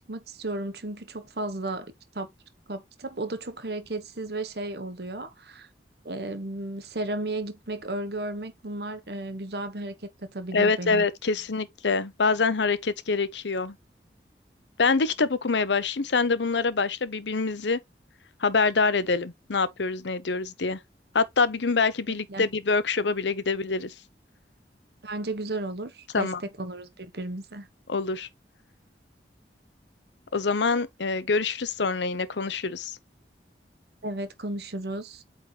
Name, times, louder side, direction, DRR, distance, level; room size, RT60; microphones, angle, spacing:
voice 1, 0.1-2.3 2.7-5.7 6.0-11.0 22.1-22.5 25.0-26.3 26.6-27.7 34.0-35.2, right 2 dB, 65° right, 1.2 m, -34 dB
voice 2, 10.5-13.8 14.8-17.8 18.4-20.8 21.1-23.9 26.1-26.4 27.9-28.3 30.3-33.0, left 4 dB, 85° left, 0.8 m, -25 dB
8.5 x 3.8 x 3.3 m
head